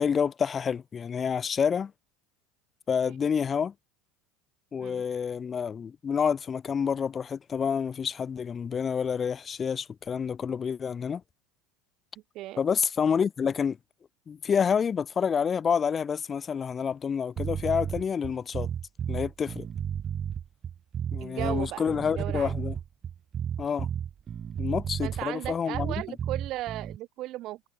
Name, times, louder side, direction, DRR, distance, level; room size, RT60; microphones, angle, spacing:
voice 1, 0.0-1.9 2.9-3.7 4.7-11.2 12.6-13.8 14.3-18.7 19.1-19.7 21.1-22.8 23.6-23.9 24.6-25.9, left 7 dB, 30° left, 0.9 m, -28 dB
sound 1, 17.4-27.0, right 8 dB, 35° right, 0.4 m, -33 dB
voice 2, 21.2-21.8 22.1-22.5 25.0-27.6, right 16 dB, 55° right, 1.1 m, -36 dB
supercardioid pair, 95°, 0 cm